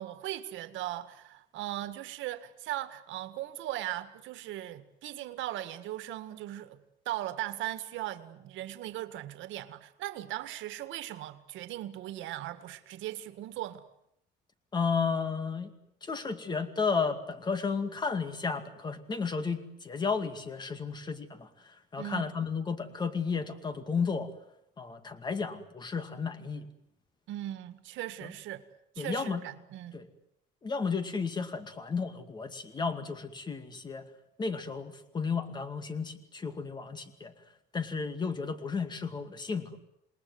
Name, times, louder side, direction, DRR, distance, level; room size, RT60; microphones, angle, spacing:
voice 1, 0.0-6.8 7.1-13.9 22.0-22.3 27.3-28.6 29.0-30.0, right 14 dB, 85° right, 1.9 m, -38 dB
voice 2, 14.7-15.7 16.0-21.5 21.9-24.3 24.8-26.7 28.2-28.3 29.0-29.4 29.9-30.1 30.6-34.0 34.4-37.3 37.7-39.8, left 5 dB, 20° left, 2.3 m, -33 dB
28.0 x 20.5 x 9.6 m
cardioid pair, 160°, 19 cm